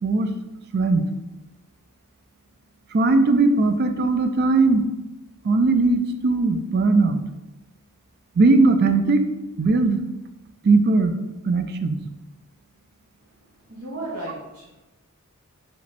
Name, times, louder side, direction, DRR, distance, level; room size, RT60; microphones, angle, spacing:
voice 1, 0.7-1.0 2.9-4.9 5.4-7.2 8.4-9.2 9.6-10.0 10.6-11.1 11.5-12.0, right 3 dB, 45° right, 8 dB, 0.4 m, -19 dB
voice 2, 13.7-14.8, right 2 dB, 80° right, -7 dB, 1.0 m, -34 dB
4.9 x 3.0 x 3.4 m, 1.0 s
head